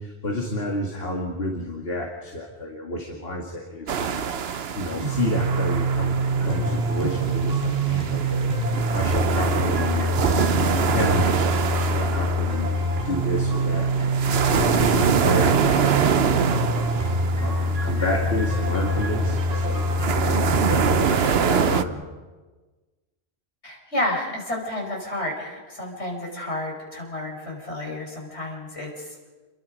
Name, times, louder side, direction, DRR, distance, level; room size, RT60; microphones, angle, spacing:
voice 1, 0.0-13.9 14.3-22.0, left 1 dB, 65° left, 1 dB, 2.5 m, -30 dB
sound 1, 3.9-21.8, right 7 dB, 70° right, 1.1 m, -25 dB
sound 2, 5.0-21.0, right 1 dB, 35° right, 4.9 m, -25 dB
voice 2, 23.6-29.3, left 1 dB, 85° left, -1 dB, 5.9 m, -31 dB
29.0 x 22.0 x 5.3 m, 1.3 s
omnidirectional pair, 1.1 m